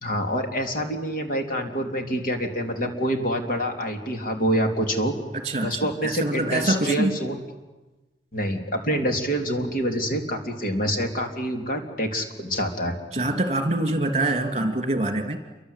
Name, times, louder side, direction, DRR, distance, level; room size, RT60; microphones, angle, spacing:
voice 1, 0.0-5.2 5.6-7.4 8.3-13.0, equal, 50° left, 4 dB, 3.4 m, -26 dB
voice 2, 5.3-7.1 13.1-15.4, right 2 dB, 40° right, 6 dB, 2.9 m, -25 dB
28.5 x 24.0 x 8.4 m, 1.1 s
head